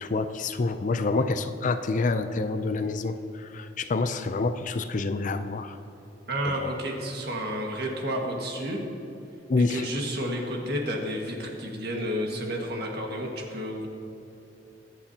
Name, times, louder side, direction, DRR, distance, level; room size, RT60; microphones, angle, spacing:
voice 1, 0.0-5.8 6.5-6.7 9.5-9.8, left 3 dB, 45° left, 10 dB, 0.4 m, -27 dB
voice 2, 6.3-8.8 9.6-13.9, equal, 60° right, 0 dB, 1.8 m, -31 dB
22.5 x 8.3 x 2.9 m, 2.9 s
head